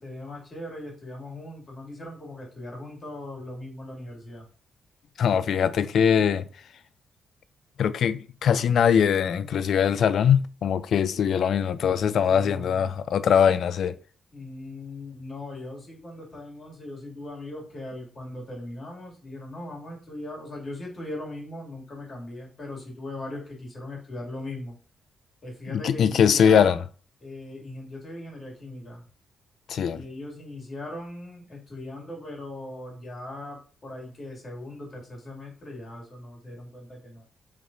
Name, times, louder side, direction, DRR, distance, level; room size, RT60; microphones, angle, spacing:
voice 1, 0.0-4.5 12.0-12.9 14.3-24.8 25.4-26.8 27.2-29.0 29.9-37.2, left 1 dB, 45° left, 2.1 m, -39 dB
voice 2, 5.2-6.4 7.8-14.0 25.7-26.8 29.7-30.0, left 8 dB, 70° left, 0.3 m, -22 dB
3.3 x 3.0 x 3.8 m
cardioid pair, 70°, 0 cm